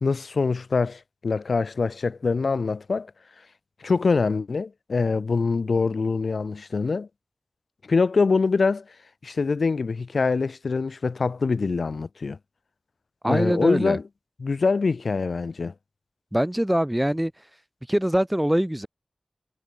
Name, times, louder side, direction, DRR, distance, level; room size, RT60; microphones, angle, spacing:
voice 1, 0.0-3.1 3.8-7.1 7.9-8.8 9.2-12.4 13.3-14.0 14.4-15.7, left 4 dB, 90° left, 0.9 m, -24 dB
voice 2, 13.2-14.0 16.3-17.3 17.9-18.9, equal, 10° right, 0.5 m, -23 dB
wide cardioid pair, 50°, 0 cm